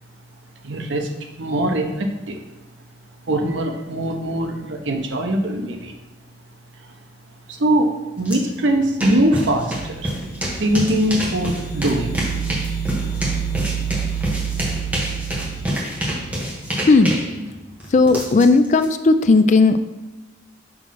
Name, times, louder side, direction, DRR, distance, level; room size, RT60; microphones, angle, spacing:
voice 1, 0.6-1.1 1.4-2.4 3.3-5.9 7.5-10.1 10.6-12.1, right 1 dB, 90° right, 4 dB, 0.8 m, -22 dB
sound 1, 8.3-8.4 8.7-18.9, equal, 10° right, 1.2 m, -27 dB
sound 2, 9.2-16.7, right 7 dB, 60° left, 0.8 m, -29 dB
voice 2, 16.9-17.2 17.9-19.8, left 3 dB, 40° left, 10 dB, 0.3 m, -15 dB
6.1 x 3.1 x 5.7 m, 1.0 s
head